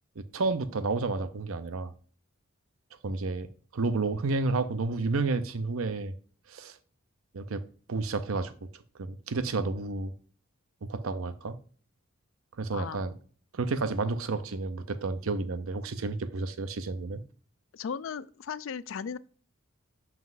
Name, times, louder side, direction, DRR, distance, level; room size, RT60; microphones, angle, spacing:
voice 1, 0.2-1.9 3.0-6.1 6.5-6.8 7.3-8.5 9.0-10.1 10.8-11.6 12.6-13.1 13.5-17.2, right 3 dB, 80° right, 0.6 m, -31 dB
voice 2, 17.7-19.2, left 6 dB, 70° left, 0.4 m, -36 dB
7.3 x 5.8 x 2.5 m
head